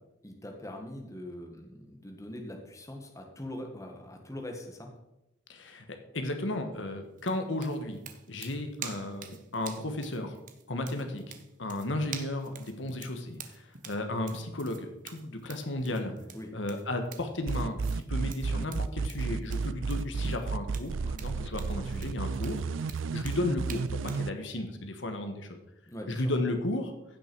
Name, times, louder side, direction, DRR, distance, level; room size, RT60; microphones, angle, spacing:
voice 1, 0.2-4.9 16.3-16.5 25.9-26.3, left 1 dB, 15° left, 2 dB, 1.5 m, -42 dB
voice 2, 5.5-8.0 8.3-10.4 10.7-11.3 11.6-16.1 16.5-22.6 23.1-25.6 26.1-26.9, left 1 dB, 75° left, 6 dB, 1.3 m, -34 dB
sound 1, 7.2-24.3, right 7 dB, 45° right, 0.9 m, -47 dB
sound 2, 17.5-24.3, right 4 dB, 85° right, 0.4 m, -32 dB
15.5 x 6.0 x 4.6 m, 0.89 s
head